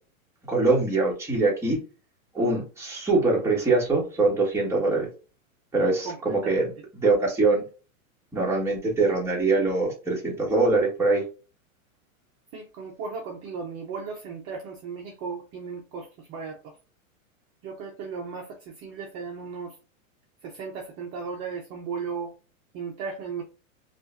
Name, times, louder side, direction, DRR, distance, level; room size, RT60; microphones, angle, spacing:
voice 1, 0.5-1.8 2.3-5.1 5.7-6.7 7.0-7.6 8.3-11.2, right 3 dB, 5° right, 1.8 m, -23 dB
voice 2, 6.0-6.7 12.5-16.8 17.6-19.8 20.4-22.4 22.7-23.4, right 5 dB, 35° right, 0.8 m, -36 dB
5.3 x 2.5 x 2.7 m
hypercardioid pair, 135°, 42 cm